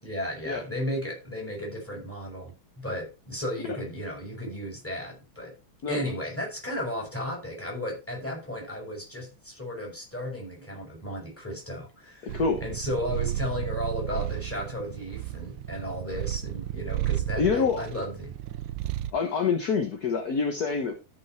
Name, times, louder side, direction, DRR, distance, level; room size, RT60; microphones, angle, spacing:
voice 1, 0.0-5.6 5.9-18.3, equal, 5° left, 5.7 m, -34 dB
voice 2, 12.2-12.6 17.3-17.9 19.1-20.9, left 5 dB, 50° left, 1.7 m, -26 dB
Purr, 12.3-19.2, right 13 dB, 75° right, 1.4 m, -33 dB
13.5 x 5.8 x 4.4 m
omnidirectional pair, 2.2 m